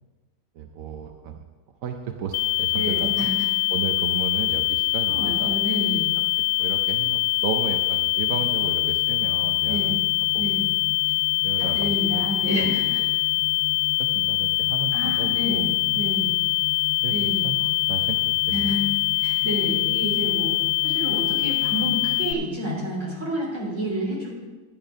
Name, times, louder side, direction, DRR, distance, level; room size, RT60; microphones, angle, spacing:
voice 1, 0.5-1.4 1.8-3.3 3.7-5.5 6.2-10.0 10.3-10.4 11.4-12.2 12.6-12.7 13.4-13.5 13.7-15.7 15.9-16.1 17.0-18.7, right 7 dB, 60° right, 4 dB, 0.9 m, -34 dB
sound 1, 2.3-22.3, left 22 dB, 90° left, 1.3 m, -24 dB
voice 2, 2.7-3.5 5.1-6.1 9.7-10.0 10.4-10.6 11.6-13.0 14.9-16.3 17.1-17.5 18.5-18.8 19.1-20.5 20.8-24.3, equal, 40° right, -3 dB, 3.5 m, -29 dB
sound 2, 8.3-23.3, left 8 dB, 65° left, 1.1 m, -39 dB
11.5 x 8.8 x 5.1 m, 1.3 s
omnidirectional pair, 2.0 m